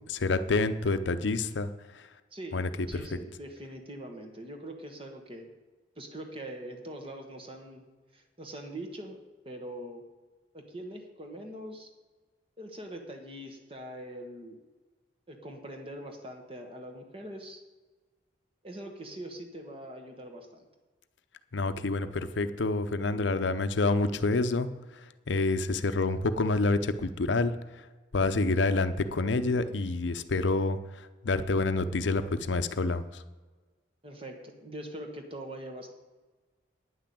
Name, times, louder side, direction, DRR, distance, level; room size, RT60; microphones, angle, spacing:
voice 1, 0.1-2.1 2.5-3.2 21.5-27.9 28.1-33.2, left 3 dB, 75° left, 11 dB, 0.6 m, -28 dB
voice 2, 2.3-5.5 6.0-7.8 8.1-9.2 9.4-10.0 10.5-11.9 12.6-14.6 15.3-17.6 18.6-20.7 34.0-35.9, right 1 dB, 30° right, 3 dB, 1.3 m, -42 dB
9.5 x 6.0 x 8.5 m, 1.3 s
head